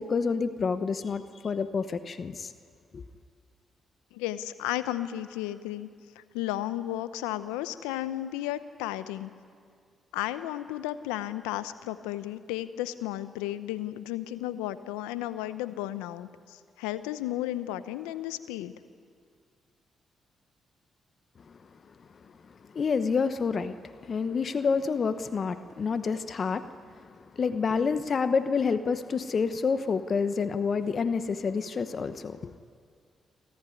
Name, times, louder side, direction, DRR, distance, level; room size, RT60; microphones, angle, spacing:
voice 1, 0.0-2.5 2.9-3.0 22.7-26.7 27.3-32.5, left 5 dB, 55° left, 11 dB, 1.0 m, -28 dB
voice 2, 4.1-5.9 6.2-9.3 10.1-18.7, left 14 dB, 90° left, 13 dB, 0.7 m, -33 dB
26.5 x 14.0 x 9.9 m, 2.3 s
hypercardioid pair, 45°, 0 cm